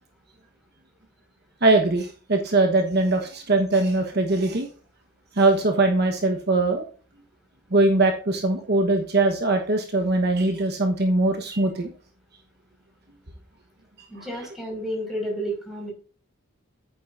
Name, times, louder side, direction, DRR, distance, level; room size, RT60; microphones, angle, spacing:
voice 1, 1.6-4.7 5.4-6.8 7.7-11.9, right 2 dB, 50° right, 4 dB, 1.2 m, -21 dB
voice 2, 14.1-15.9, equal, ahead, -1 dB, 5.4 m, -31 dB
10.5 x 9.0 x 2.6 m, 0.40 s
head